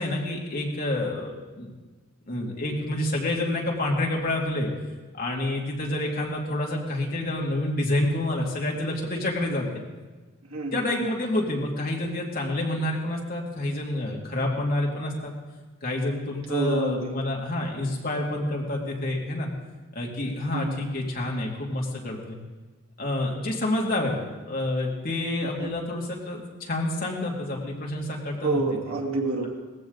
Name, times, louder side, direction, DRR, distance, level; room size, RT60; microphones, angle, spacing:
voice 1, 0.0-1.7 2.3-4.7 5.1-9.8 10.7-15.3 15.8-19.5 19.9-22.4 23.0-24.2 24.5-28.6, left 1 dB, 40° left, -2 dB, 2.5 m, -28 dB
voice 2, 10.5-11.1 16.5-17.2 20.5-20.8 25.4-25.7 28.4-29.5, right 3 dB, 85° right, -1 dB, 2.8 m, -29 dB
19.0 x 15.0 x 4.0 m, 1.3 s
head